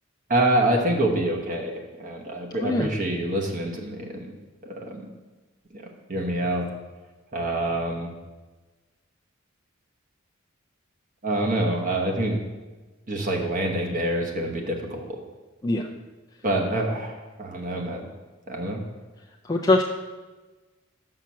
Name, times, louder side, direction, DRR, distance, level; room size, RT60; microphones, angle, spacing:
voice 1, 0.3-4.3 4.6-5.1 5.7-6.7 7.3-8.1 11.2-12.4 13.1-15.2 16.4-18.1 18.5-18.8, right 1 dB, 40° right, 1 dB, 1.0 m, -26 dB
voice 2, 19.4-19.8, left 2 dB, 20° left, 0 dB, 0.4 m, -22 dB
5.9 x 5.7 x 6.1 m, 1.2 s
head